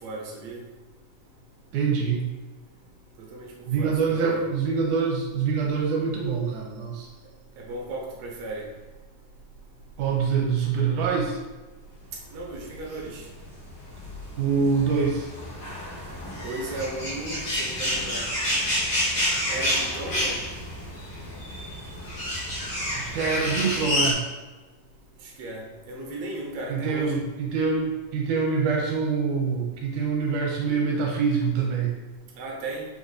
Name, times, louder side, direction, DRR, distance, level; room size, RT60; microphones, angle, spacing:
voice 1, 0.0-0.6 3.3-3.5 3.8-4.4 7.6-8.6 12.3-13.2 16.4-18.3 19.5-20.4 25.4-27.2 32.4-32.9, right 2 dB, 65° right, -2 dB, 1.8 m, -35 dB
voice 2, 1.7-2.2 3.7-7.1 10.0-11.4 14.4-15.3 23.0-24.2 26.7-31.9, right 5 dB, 85° right, -1 dB, 2.1 m, -25 dB
sound 1, 13.0-24.1, equal, 85° left, 0.9 m, -29 dB
5.5 x 2.4 x 3.9 m, 1.2 s
omnidirectional pair, 3.6 m